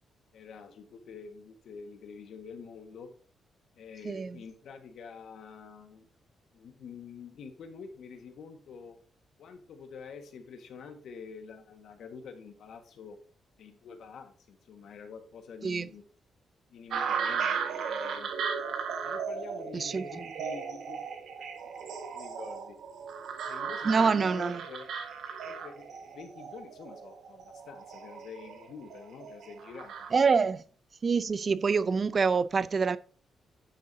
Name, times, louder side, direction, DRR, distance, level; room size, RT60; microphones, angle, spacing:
voice 1, 0.3-3.1 3.7-6.1 6.5-9.0 9.4-13.2 13.6-16.0 16.7-18.3 19.0-21.0 21.4-21.9 22.1-22.8 23.5-24.9 25.4-30.1, left 5 dB, 70° left, 1.6 m, -47 dB
voice 2, 4.0-4.4 15.6-15.9 19.7-20.0 23.8-24.6 30.1-30.6 31.0-33.0, right 5 dB, 35° right, 0.5 m, -26 dB
sound 1, 16.9-30.1, right 6 dB, 75° right, 1.5 m, -36 dB
10.0 x 6.4 x 2.7 m
cardioid pair, 120°, 0 cm